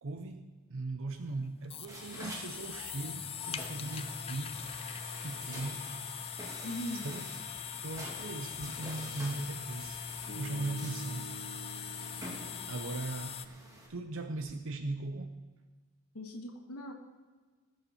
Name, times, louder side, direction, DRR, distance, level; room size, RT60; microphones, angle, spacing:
voice 1, 0.0-4.6 5.2-5.9 7.0-7.3 7.8-10.0 10.3-11.3 12.7-13.6 13.9-15.4, right 2 dB, 60° right, 7 dB, 0.6 m, -39 dB
sound 1, 1.1-13.5, left 7 dB, 25° left, 0.4 m, -42 dB
sound 2, 1.9-13.9, right 1 dB, 15° right, 1.8 m, -48 dB
voice 2, 6.6-7.0 16.1-16.9, equal, 90° left, 2 dB, 1.4 m, -39 dB
Bass guitar, 10.3-14.4, right 4 dB, 50° left, 1.4 m, -50 dB
19.5 x 7.1 x 4.3 m, 1.4 s
head